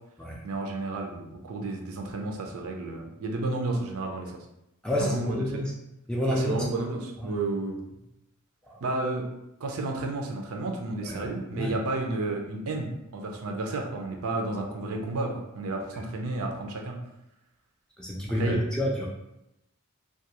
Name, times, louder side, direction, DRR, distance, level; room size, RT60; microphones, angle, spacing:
voice 1, 0.4-4.4 4.9-5.6 6.3-7.8 8.8-9.3 9.6-17.0 18.3-18.6, right 2 dB, 70° right, 2 dB, 0.5 m, -31 dB
voice 2, 4.8-5.6 6.1-6.6 7.2-7.3 8.7-8.8 11.0-11.3 11.5-11.8 18.0-19.1, left 1 dB, 5° left, -3 dB, 0.3 m, -29 dB
2.3 x 2.3 x 2.8 m, 0.88 s
head